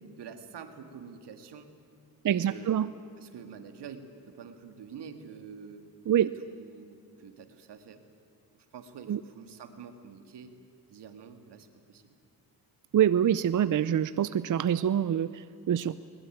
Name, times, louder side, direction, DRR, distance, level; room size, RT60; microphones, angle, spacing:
voice 1, 0.2-1.7 2.2-5.9 6.2-8.0 8.5-10.5 10.9-12.1, right 6 dB, 80° right, 8 dB, 2.2 m, -47 dB
voice 2, 2.2-2.9 6.1-6.3 9.1-9.2 12.9-16.0, right 10 dB, 50° right, 15 dB, 0.6 m, -25 dB
21.0 x 21.0 x 9.2 m, 2.7 s
cardioid pair, 80°, 40 cm